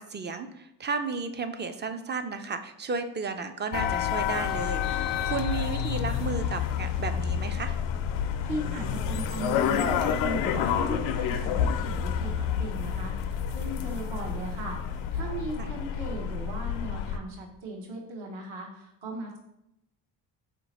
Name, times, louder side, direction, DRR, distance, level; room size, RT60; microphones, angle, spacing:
voice 1, 0.0-7.8 15.6-15.7, right 4 dB, 25° right, 8 dB, 0.3 m, -33 dB
sound 1, 3.7-17.2, left 8 dB, 75° left, 0.5 m, -29 dB
voice 2, 8.4-19.4, right 1 dB, 70° right, 0 dB, 1.0 m, -37 dB
4.1 x 2.9 x 4.1 m, 0.84 s
supercardioid pair, 65°, 45 cm